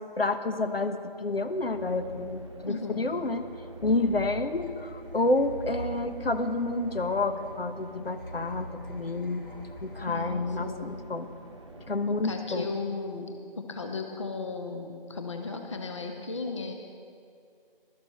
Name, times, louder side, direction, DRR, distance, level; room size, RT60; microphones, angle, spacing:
voice 1, 0.2-3.5 3.8-9.4 9.8-11.3 11.9-12.7, left 2 dB, 75° left, 9 dB, 1.1 m, -29 dB
sound 1, 0.9-12.8, right 1 dB, 30° right, 1.0 m, -47 dB
voice 2, 2.7-3.2 10.1-11.0 12.1-13.3 13.7-16.7, left 4 dB, 30° left, 4 dB, 0.8 m, -35 dB
sound 2, 3.8-11.3, left 1 dB, 60° left, 1.5 m, -44 dB
16.5 x 12.5 x 4.2 m, 2.4 s
figure-of-eight pair, 165°, 30 cm